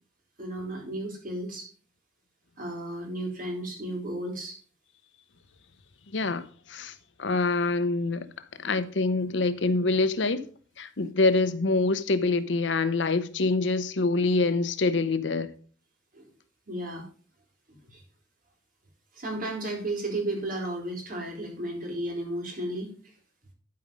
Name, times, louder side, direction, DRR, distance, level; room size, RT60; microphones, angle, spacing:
voice 1, 0.4-1.7 2.6-4.6 16.1-16.3 16.7-17.1 17.7-18.0 19.1-23.0, right 1 dB, 50° right, 3.9 m, -33 dB
voice 2, 6.1-6.9 7.2-8.3 8.6-10.4 10.8-15.5, left 3 dB, 80° left, 0.8 m, -25 dB
11.5 x 5.1 x 5.3 m
head